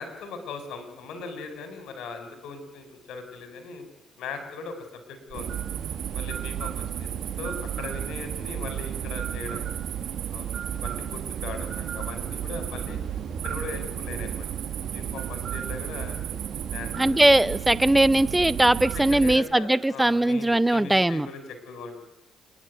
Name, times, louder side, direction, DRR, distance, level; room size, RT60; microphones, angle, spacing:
voice 1, 0.0-3.9 4.2-4.7 5.1-5.5 6.1-7.1 7.4-9.6 10.3-13.0 13.4-14.5 14.8-16.2 16.7-17.2 17.5-17.7 18.9-22.0, left 4 dB, 85° left, 8 dB, 4.3 m, -39 dB
sound 1, 5.3-19.4, right 9 dB, 70° right, 1.8 m, -32 dB
voice 2, 17.0-21.3, right 1 dB, 10° right, 17 dB, 0.7 m, -20 dB
27.5 x 10.5 x 9.3 m, 0.96 s
cardioid pair, 90°, 0 cm